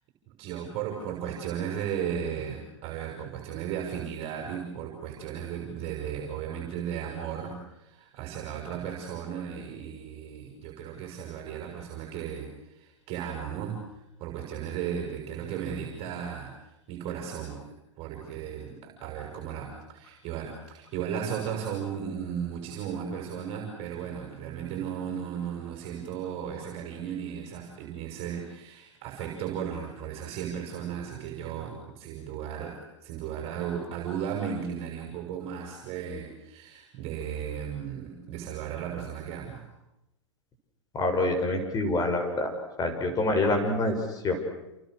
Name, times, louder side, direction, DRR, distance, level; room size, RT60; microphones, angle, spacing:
voice 1, 0.3-17.6 18.0-39.7, right 8 dB, 40° right, 1 dB, 6.6 m, -35 dB
voice 2, 40.9-42.5 42.8-44.0 44.2-44.4, left 2 dB, 25° left, 5 dB, 7.1 m, -26 dB
30.0 x 29.0 x 6.6 m, 0.93 s
hypercardioid pair, 105°, 16 cm